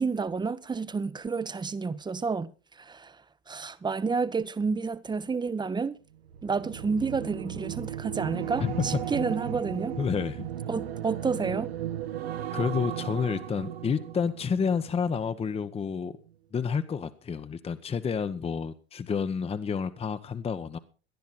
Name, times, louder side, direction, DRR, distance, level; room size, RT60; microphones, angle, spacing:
voice 1, 0.0-6.0 6.4-10.0 10.7-11.7, right 4 dB, 15° right, 0.9 m, -30 dB
sound 1, 6.2-15.6 16.0-16.3, right 11 dB, 70° right, 1.5 m, -36 dB
voice 2, 8.6-8.9 10.0-10.5 12.5-16.1 16.5-20.8, left 6 dB, 20° left, 1.0 m, -29 dB
18.5 x 12.0 x 4.2 m
figure-of-eight pair, 75°, 31 cm